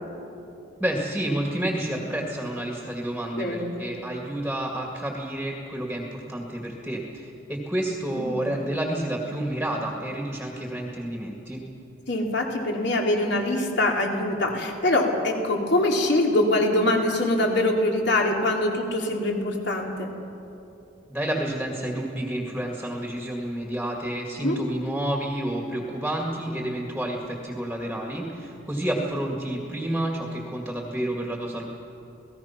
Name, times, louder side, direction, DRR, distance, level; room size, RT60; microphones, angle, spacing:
voice 1, 0.8-11.6 21.1-31.7, right 1 dB, 5° right, 0 dB, 2.0 m, -30 dB
voice 2, 3.3-3.7 8.1-8.5 12.1-20.1 24.4-24.6, left 1 dB, 60° left, 0 dB, 3.2 m, -24 dB
28.5 x 18.5 x 5.9 m, 2.9 s
head